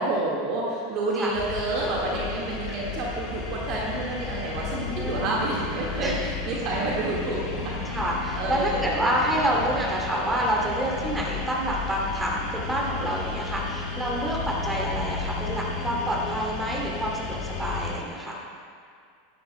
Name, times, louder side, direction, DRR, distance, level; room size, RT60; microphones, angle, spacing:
voice 1, 0.0-8.0 8.3-9.3, right 2 dB, 45° right, -4 dB, 1.7 m, -29 dB
sound 1, 1.3-17.9, left 4 dB, 45° left, 1.6 m, -33 dB
voice 2, 4.7-5.4 6.0-6.2 7.8-18.4, right 1 dB, 10° right, -3 dB, 2.6 m, -28 dB
16.0 x 11.0 x 2.2 m, 2.2 s
figure-of-eight pair, 85°, 0 cm